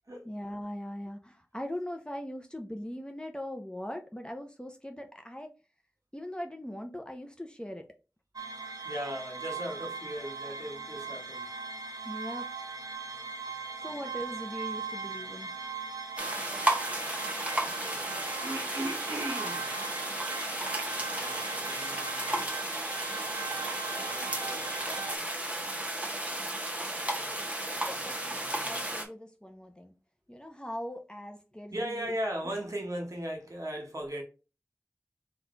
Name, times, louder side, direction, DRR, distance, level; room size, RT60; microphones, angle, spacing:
voice 1, 0.3-5.5 6.1-7.8 12.0-12.5 13.8-15.5 27.9-29.9 30.3-32.1 32.4-32.5, left 1 dB, 15° left, 0.7 m, -40 dB
sound 1, 8.4-25.2, right 5 dB, 80° right, 0.7 m, -39 dB
voice 2, 8.8-11.6 17.6-19.7 20.9-22.5 23.4-24.9 26.9-27.9 28.4-28.8 31.7-34.2, equal, 60° right, 1.6 m, -39 dB
sound 2, 16.2-29.1, right 1 dB, 20° right, 1.1 m, -34 dB
4.1 x 2.5 x 4.5 m
wide cardioid pair, 55°, 6 cm